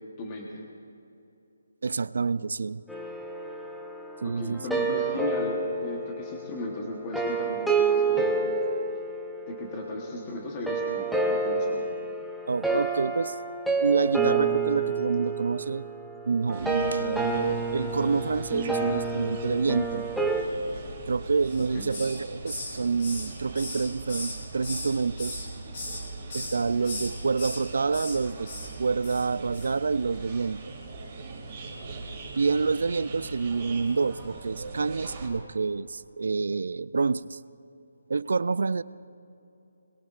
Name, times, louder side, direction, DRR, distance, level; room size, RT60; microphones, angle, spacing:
voice 1, 0.2-0.7 4.2-8.5 9.5-11.8 21.7-21.9, left 2 dB, 15° left, -1 dB, 1.1 m, -36 dB
voice 2, 1.8-2.8 4.2-4.7 12.5-13.4 13.8-15.9 16.3-20.1 21.1-25.4 26.3-28.5 28.8-30.7 32.4-37.4 38.1-38.8, right 4 dB, 60° right, 18 dB, 0.4 m, -27 dB
sound 1, 2.9-10.1 10.7-20.4, right 4 dB, ahead, 0.6 m, -29 dB
sound 2, 16.5-35.3, right 3 dB, 20° right, 2.1 m, -41 dB
Hiss, 21.4-22.2 22.5-24.9 25.2-26.0 26.3-26.6 26.8-27.6 27.9-28.2 28.4-28.7 29.0-29.3 29.5-29.7, left 2 dB, 35° left, 4.0 m, -37 dB
26.5 x 21.5 x 2.5 m, 2.8 s
hypercardioid pair, 180°, 0 cm